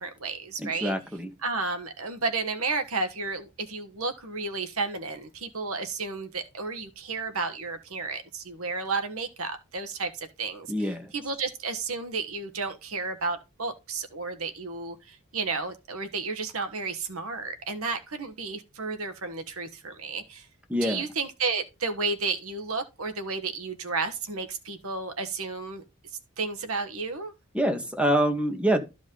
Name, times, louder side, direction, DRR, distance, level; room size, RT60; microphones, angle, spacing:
voice 1, 0.0-0.9 1.4-10.7 11.1-20.5 20.8-25.8 26.4-27.3, right 4 dB, 85° right, 1.4 m, -32 dB
voice 2, 0.6-1.3 10.7-11.1 20.7-21.0 27.5-28.8, right 1 dB, 5° right, 1.5 m, -25 dB
13.5 x 5.1 x 3.9 m
head